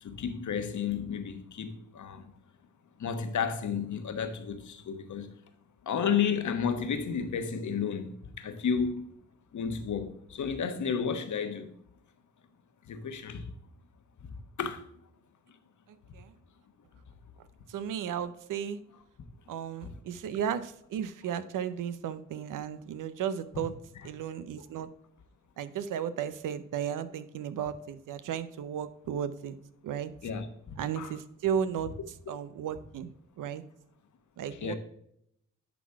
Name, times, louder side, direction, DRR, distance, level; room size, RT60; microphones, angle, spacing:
voice 1, 0.0-2.3 3.0-5.3 5.8-9.2 9.5-11.7 12.9-13.5 14.2-14.9 19.2-19.3 19.8-19.9 23.6-23.7 24.6-24.7 30.2-31.1 34.6-34.7, left 6 dB, 70° left, 1.2 m, -32 dB
voice 2, 15.9-16.3 17.7-18.8 19.5-23.8 24.0-24.9 25.6-29.6 29.8-30.1 30.8-31.9 32.3-33.6 34.4-34.7, right 8 dB, 85° right, 0.7 m, -34 dB
10.5 x 4.1 x 4.6 m
cardioid pair, 60°, 31 cm